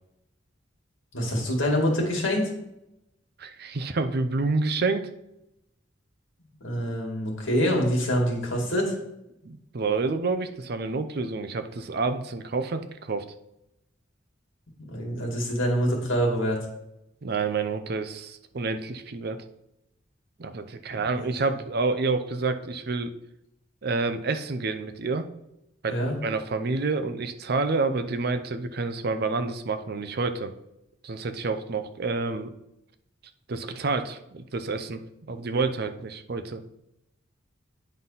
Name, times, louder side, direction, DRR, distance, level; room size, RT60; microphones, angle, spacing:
voice 1, 1.1-2.5 6.6-8.9 14.7-16.6 20.9-21.6 25.9-26.1, equal, 85° left, 0 dB, 2.1 m, -26 dB
voice 2, 3.4-5.1 9.4-13.2 17.2-19.4 20.4-23.1 23.8-25.3 25.8-30.5 31.0-32.5 33.5-35.0 35.3-36.6, right 3 dB, 55° right, 10 dB, 0.6 m, -28 dB
9.4 x 4.0 x 5.6 m, 0.86 s
head